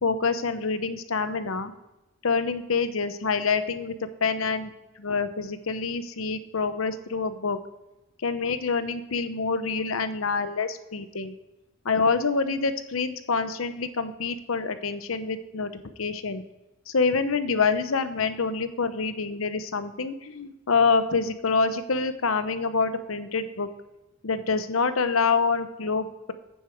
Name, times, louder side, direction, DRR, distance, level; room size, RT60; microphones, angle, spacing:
voice 1, 0.0-1.7 2.2-3.9 4.2-4.7 5.0-7.6 8.2-11.3 11.8-15.7 16.0-16.4 16.9-23.7 24.2-26.3, left 4 dB, 75° left, 11 dB, 0.8 m, -26 dB
9.4 x 7.4 x 4.5 m, 0.98 s
head